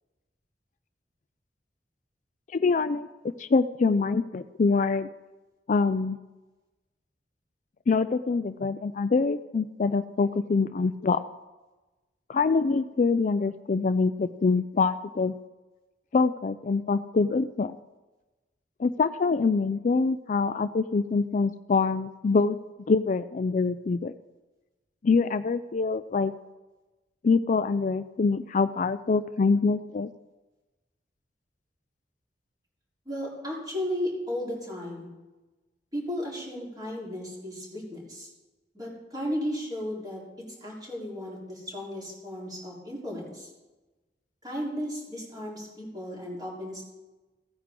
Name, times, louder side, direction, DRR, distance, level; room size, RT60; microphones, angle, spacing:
voice 1, 2.5-3.1 3.4-5.1 5.7-6.2 7.9-11.2 12.3-15.3 16.1-17.7 18.8-22.6 22.9-24.1 25.0-26.3 27.2-30.1, left 4 dB, 45° left, 12 dB, 0.4 m, -25 dB
voice 2, 33.1-35.1 35.9-38.3 38.7-40.2 40.6-43.5 44.4-46.8, equal, 25° right, -4 dB, 3.9 m, -34 dB
16.5 x 9.5 x 3.8 m, 1.1 s
head